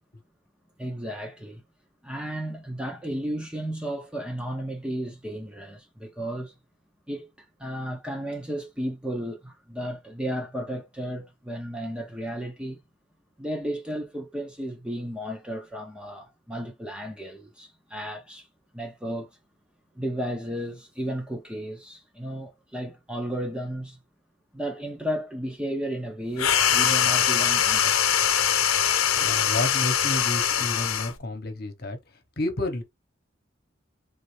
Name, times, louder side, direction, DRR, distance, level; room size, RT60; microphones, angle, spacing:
voice 1, 0.8-1.6 2.0-6.6 7.1-12.8 13.4-18.5 18.7-19.3 19.9-24.0 24.5-28.2, equal, 5° right, 0.8 m, -33 dB
sound 1, 26.4-31.2, left 9 dB, 90° left, 0.8 m, -22 dB
voice 2, 29.2-32.0 32.4-32.8, left 1 dB, 50° left, 1.2 m, -30 dB
3.9 x 3.3 x 3.3 m
head